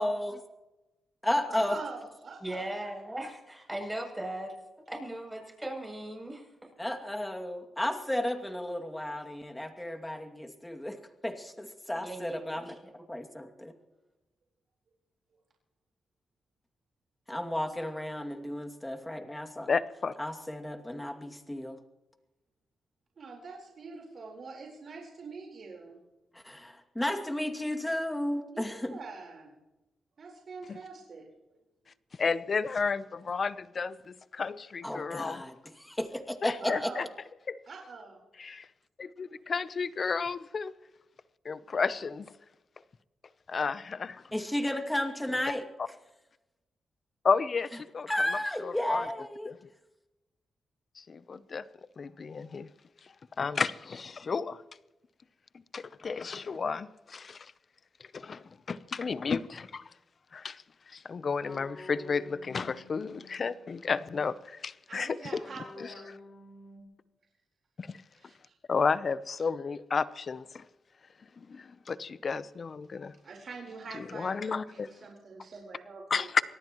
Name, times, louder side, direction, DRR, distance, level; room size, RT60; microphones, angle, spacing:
voice 1, 0.0-0.4 1.2-1.8 6.8-12.8 13.1-13.7 17.3-19.7 20.2-21.8 26.3-29.0 34.8-36.9 44.3-45.6 48.1-49.5, left 1 dB, 10° left, 2.5 m, -33 dB
voice 2, 1.4-2.7 23.2-26.0 28.5-29.5 30.2-31.2 36.6-37.1 37.7-38.2 64.9-66.2 68.2-68.5 73.2-76.3, right 4 dB, 60° right, 4.2 m, -44 dB
voice 3, 2.4-4.5 4.9-6.7 11.9-12.8, right 1 dB, 10° right, 7.9 m, -38 dB
voice 4, 19.7-20.1 30.7-30.8 32.2-35.4 36.4-37.0 37.5-37.6 38.4-38.7 39.0-40.7 41.4-42.3 43.5-44.2 47.2-48.1 48.6-49.1 49.5-49.6 51.0-51.6 52.0-52.7 53.4-54.6 55.7-57.5 58.1-59.8 60.3-60.6 60.9-65.4 65.8-65.9 67.8-67.9 68.7-70.6 71.4-73.1 73.9-74.9 76.1-76.4, left 5 dB, 50° left, 0.7 m, -32 dB
sound 1, 58.8-59.8 61.4-63.8 65.4-66.8, left 2 dB, 35° left, 4.7 m, -50 dB
25.0 x 18.5 x 3.1 m
cardioid pair, 65°, 0 cm